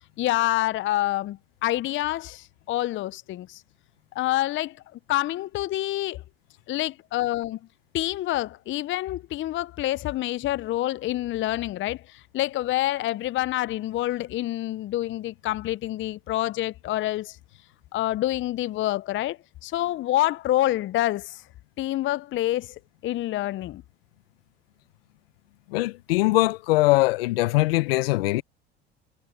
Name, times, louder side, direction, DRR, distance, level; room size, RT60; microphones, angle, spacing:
voice 1, 0.2-3.6 4.1-6.2 6.7-7.6 7.9-17.4 17.9-21.4 21.8-23.8, left 15 dB, 40° left, 0.6 m, -27 dB
voice 2, 25.7-28.4, left 20 dB, 75° left, 0.9 m, -22 dB
hypercardioid pair, 70°, 29 cm